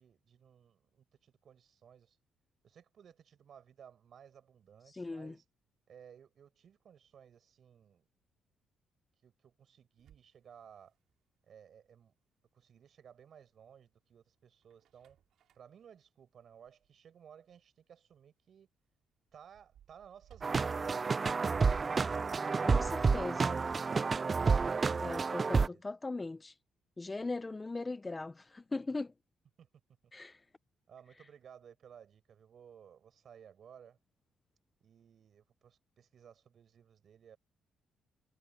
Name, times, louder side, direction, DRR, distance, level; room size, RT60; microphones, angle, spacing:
voice 1, 0.0-2.2 2.6-5.4 5.9-8.0 9.2-10.9 11.5-12.1 12.5-15.2 15.5-18.7 19.3-22.1 25.1-25.8 29.6-29.7 30.9-34.0 34.8-37.4, right 8 dB, 60° right, 6.0 m, -58 dB
voice 2, 4.9-5.4 22.6-23.5 25.0-26.5 27.0-29.1 30.1-30.4, left 3 dB, 20° left, 0.6 m, -39 dB
sound 1, 10.0-11.3 11.8-11.9 13.4-13.9 14.4-17.1 17.5-17.6 18.0-18.1 18.4-18.5 18.7-22.5 22.8-23.0 23.3-23.9, right 10 dB, 75° right, 3.7 m, -58 dB
sound 2, 20.4-25.7, right 4 dB, 35° right, 0.3 m, -30 dB
cardioid pair, 90°, 0 cm